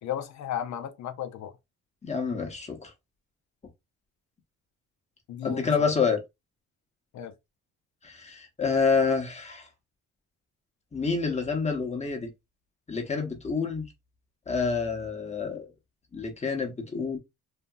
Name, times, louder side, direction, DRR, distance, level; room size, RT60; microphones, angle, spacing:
voice 1, 0.0-1.5 5.3-5.9 7.1-7.3, left 10 dB, 65° left, 0.6 m, -34 dB
voice 2, 2.0-2.9 5.4-6.2 8.0-9.7 10.9-12.3 12.9-13.9 14.5-15.7 16.1-17.2, left 5 dB, 20° left, 0.9 m, -28 dB
2.8 x 2.6 x 2.2 m
cardioid pair, 90°, 30 cm